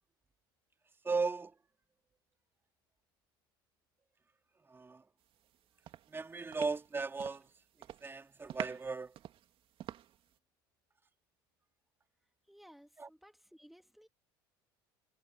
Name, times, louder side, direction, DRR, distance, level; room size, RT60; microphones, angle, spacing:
voice 1, 1.0-1.5 4.7-5.0 6.1-7.5 8.0-9.2 13.0-13.1, right 4 dB, 20° right, 2.2 m, -36 dB
sound 1, 5.3-5.6 5.9-7.5 7.8-8.1 8.5-10.3, right 11 dB, 50° right, 2.4 m, -46 dB
voice 2, 12.5-14.1, equal, ahead, 2.1 m, -59 dB
hypercardioid pair, 85°, 12 cm